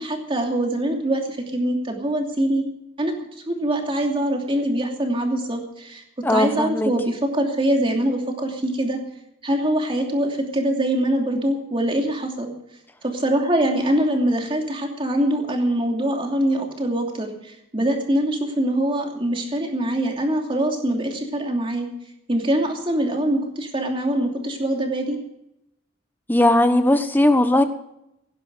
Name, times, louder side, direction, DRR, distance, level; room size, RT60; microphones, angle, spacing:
voice 1, 0.0-2.6 3.0-3.1 3.5-6.0 6.3-9.0 9.4-12.5 13.0-21.9 22.3-25.2, right 1 dB, 30° right, 2 dB, 2.8 m, -23 dB
voice 2, 6.2-6.9 26.3-27.6, left 1 dB, 10° left, 8 dB, 1.2 m, -18 dB
16.5 x 11.0 x 6.3 m, 0.83 s
head